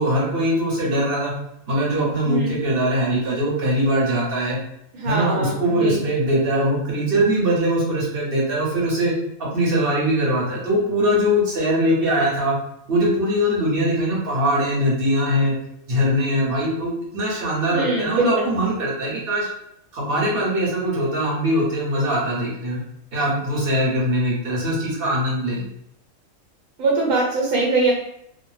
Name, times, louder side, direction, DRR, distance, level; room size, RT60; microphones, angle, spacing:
voice 1, 0.0-1.3 1.7-4.6 5.0-9.1 9.4-12.6 12.9-15.6 15.9-19.5 19.9-22.8 23.1-25.6, equal, 50° right, -4 dB, 0.9 m, -21 dB
voice 2, 4.9-6.0 17.7-18.5 26.8-27.9, right 2 dB, 85° right, -3 dB, 1.1 m, -22 dB
2.4 x 2.0 x 3.1 m, 0.76 s
omnidirectional pair, 1.4 m